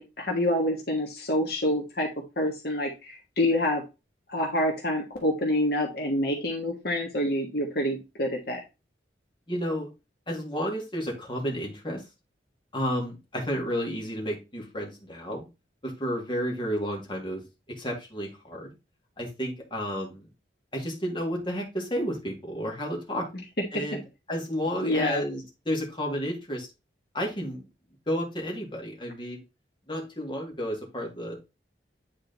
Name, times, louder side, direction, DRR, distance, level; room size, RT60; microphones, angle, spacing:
voice 1, 0.0-2.1 2.4-3.8 4.3-8.6 24.8-25.2, left 1 dB, 55° left, 1 dB, 1.4 m, -27 dB
voice 2, 9.5-9.9 10.3-12.0 12.7-15.5 15.8-17.4 17.7-18.7 19.2-20.3 20.7-23.3 23.7-24.0 24.3-26.7 27.1-27.6 28.1-29.4 29.9-31.4, equal, 25° left, 0 dB, 2.1 m, -31 dB
9.1 x 3.9 x 4.0 m, 0.26 s
head